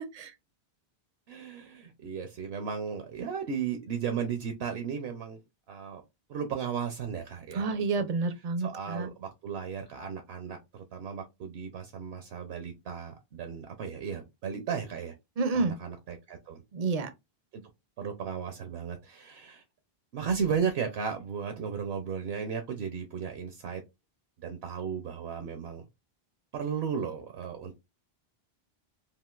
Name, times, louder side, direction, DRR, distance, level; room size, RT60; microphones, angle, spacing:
voice 1, 1.3-5.4 5.7-6.0 6.3-7.7 8.6-15.1 15.5-16.6 18.0-19.6 20.1-23.8 24.4-25.8 26.5-27.8, right 7 dB, 75° right, 0.8 m, -35 dB
voice 2, 7.5-9.1 15.4-15.7 16.7-17.1, right 4 dB, 55° right, 0.4 m, -29 dB
3.6 x 2.4 x 2.3 m
omnidirectional pair, 1.1 m